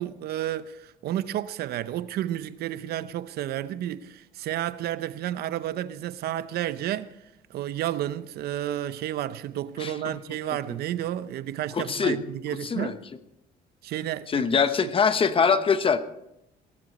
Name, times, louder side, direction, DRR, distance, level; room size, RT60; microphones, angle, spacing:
voice 1, 0.0-7.2 7.5-13.0 13.8-14.5 14.8-14.9, right 12 dB, 70° right, 0.7 m, -31 dB
voice 2, 9.8-10.1 11.7-12.2 12.6-13.0 14.3-16.0, left 6 dB, 30° left, 1.0 m, -23 dB
18.5 x 13.0 x 4.2 m
cardioid pair, 110°, 17 cm